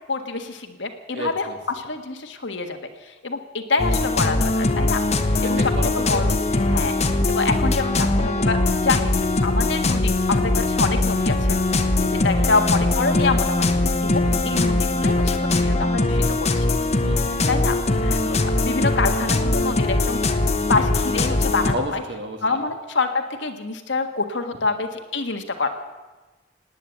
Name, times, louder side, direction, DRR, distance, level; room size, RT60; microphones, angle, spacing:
voice 1, 0.0-1.5 1.8-2.8 3.2-5.0 5.4-11.6 12.0-16.7 17.5-20.2 20.7-22.0 22.4-25.7, left 3 dB, 80° left, 6 dB, 1.7 m, -26 dB
voice 2, 1.1-1.6 5.4-6.3 12.4-12.5 14.3-14.8 17.0-17.4 17.9-18.1 21.7-22.6, right 1 dB, 65° right, 4 dB, 2.2 m, -33 dB
sound 1, 3.8-21.7, left 2 dB, 35° left, 1.1 m, -21 dB
18.0 x 9.7 x 8.2 m, 1.2 s
head